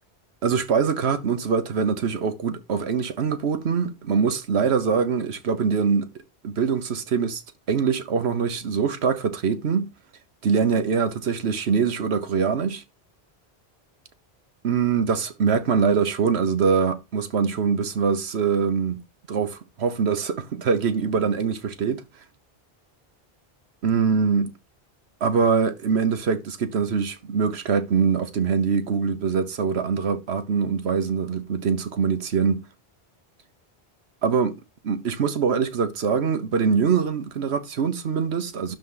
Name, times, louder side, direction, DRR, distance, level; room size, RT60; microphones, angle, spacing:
voice 1, 0.4-6.1 6.4-7.4 7.7-9.9 10.4-12.8 14.6-22.0 23.8-24.5 25.2-32.6 34.2-34.6 34.8-38.8, right 6 dB, 85° right, 1.3 m, -23 dB
12.0 x 4.0 x 3.9 m
omnidirectional pair, 1.1 m